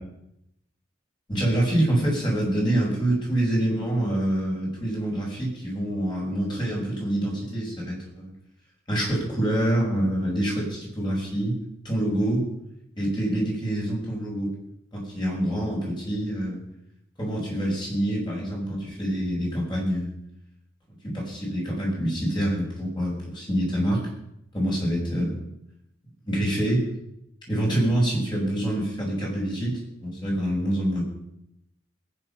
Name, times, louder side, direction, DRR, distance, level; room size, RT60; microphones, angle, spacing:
voice 1, 1.3-8.3 8.9-11.5 11.8-12.5 13.0-14.5 14.9-16.6 17.2-20.1 21.1-24.0 24.5-25.4 26.2-26.8 27.5-31.0, right 1 dB, 25° left, -3 dB, 6.3 m, -26 dB
21.0 x 9.6 x 5.7 m, 0.81 s
head